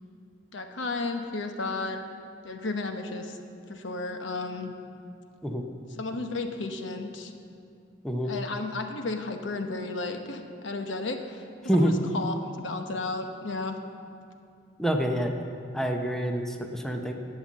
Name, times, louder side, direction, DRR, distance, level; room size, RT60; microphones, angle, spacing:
voice 1, 0.5-2.0 2.4-3.4 3.7-4.7 5.9-7.3 8.2-11.5 11.8-13.8, left 3 dB, 75° left, 5 dB, 1.0 m, -33 dB
voice 2, 14.8-15.3 15.7-17.1, equal, ahead, 2 dB, 0.7 m, -26 dB
11.5 x 8.7 x 7.4 m, 2.4 s
head